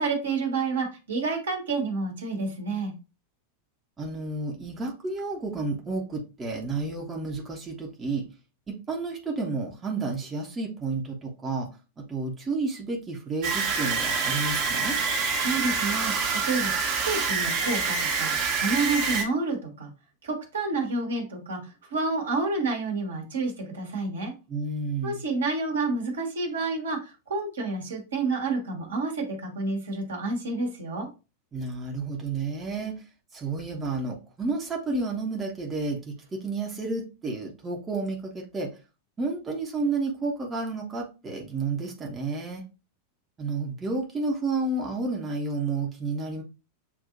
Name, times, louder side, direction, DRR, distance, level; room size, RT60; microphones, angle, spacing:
voice 1, 0.0-2.9 15.4-16.1 16.4-19.9 20.2-21.6 21.9-24.3 25.0-31.1, right 3 dB, 65° right, 2 dB, 1.4 m, -29 dB
voice 2, 4.0-8.2 8.7-11.7 12.0-15.0 24.5-25.2 31.5-33.0 33.3-38.7 39.2-42.6 43.4-46.4, right 3 dB, 20° right, -1 dB, 1.0 m, -31 dB
sound 1, 13.4-19.2, right 4 dB, 45° right, 1.1 m, -26 dB
7.2 x 2.7 x 2.5 m, 0.29 s
figure-of-eight pair, 90°, 0 cm